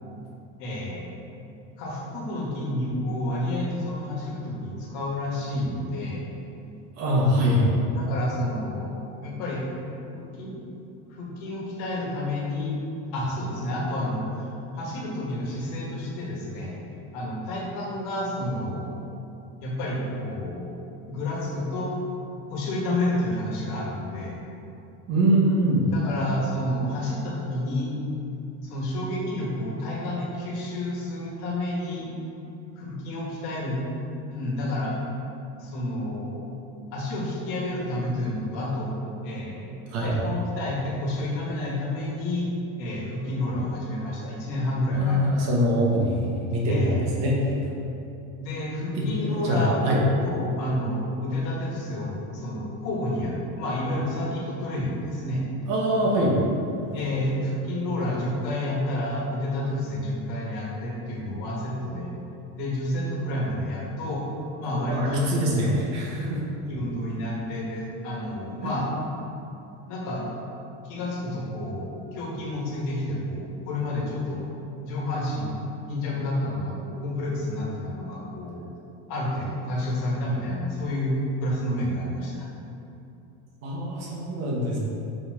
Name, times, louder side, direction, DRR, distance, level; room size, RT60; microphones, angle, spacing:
voice 1, 0.6-1.1 1.8-6.2 7.9-9.6 10.1-10.5 11.1-12.7 13.1-14.5 14.7-16.7 17.1-19.0 19.6-20.7 21.1-21.9 22.5-24.4 25.9-27.9 28.6-32.1 32.8-33.8 34.3-34.9 35.6-36.4 36.9-38.9 39.2-39.7 40.0-42.5 42.8-45.2 46.6-47.0 48.4-55.4 56.9-62.1 62.5-64.2 64.6-65.3 66.7-68.9 69.9-70.3 70.8-74.4 74.8-75.6 75.9-78.6 79.1-82.5, left 1 dB, 55° left, -3 dB, 1.5 m, -30 dB
voice 2, 7.0-7.6 25.1-25.9 39.9-40.1 44.9-47.4 49.0-49.1 49.4-50.0 55.7-56.3 64.7-66.4 68.6-68.7 83.6-84.8, equal, 45° right, -4 dB, 1.3 m, -23 dB
5.4 x 4.6 x 4.7 m, 2.8 s
cardioid pair, 170°, 37 cm